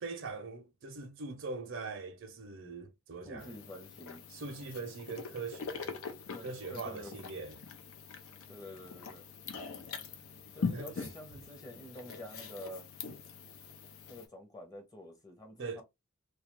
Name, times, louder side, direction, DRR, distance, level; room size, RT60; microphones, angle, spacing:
voice 1, 0.0-3.5 4.3-6.0 6.4-7.6 10.7-10.9 15.6-15.8, right 4 dB, 65° right, 0.6 m, -42 dB
voice 2, 3.2-4.2 6.3-7.1 8.5-9.3 10.5-12.9 14.1-15.8, left 1 dB, 20° left, 0.7 m, -48 dB
sound 1, 3.4-14.3, left 5 dB, 85° left, 0.5 m, -43 dB
2.3 x 2.3 x 3.0 m
head